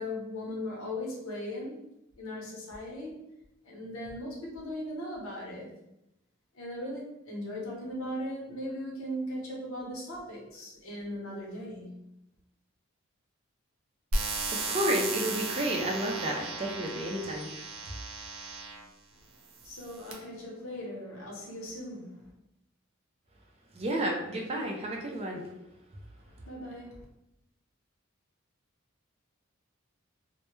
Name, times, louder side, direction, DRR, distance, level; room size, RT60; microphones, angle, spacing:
voice 1, 0.0-1.8 2.2-3.2 3.6-5.7 6.5-11.9 19.6-22.3 26.4-27.0, left 1 dB, 80° left, -3 dB, 0.8 m, -38 dB
sound 1, 14.1-18.9 19.6-20.1, right 3 dB, 90° right, 0.5 m, -35 dB
voice 2, 14.5-17.5 23.8-25.4, right 1 dB, 30° right, 0 dB, 0.4 m, -31 dB
2.1 x 2.1 x 3.0 m, 0.86 s
head